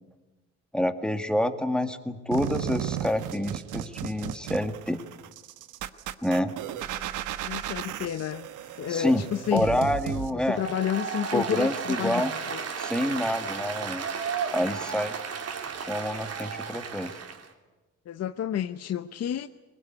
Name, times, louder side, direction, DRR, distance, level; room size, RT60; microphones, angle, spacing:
voice 1, 0.7-5.0 6.2-6.5 8.9-9.2 9.5-10.6 11.3-12.3 12.8-14.1 14.5-15.2 15.9-17.1, left 1 dB, 5° left, 8 dB, 1.9 m, -27 dB
sound 1, 2.3-10.3, right 11 dB, 85° right, 1.2 m, -35 dB
voice 2, 7.4-8.5 8.8-9.8 10.3-12.2 12.5-12.6 18.1-19.5, left 10 dB, 55° left, 12 dB, 0.8 m, -30 dB
Applause, 10.5-17.5, right 6 dB, 55° right, 3.1 m, -34 dB
22.0 x 20.5 x 9.5 m, 1.2 s
cardioid pair, 90°, 30 cm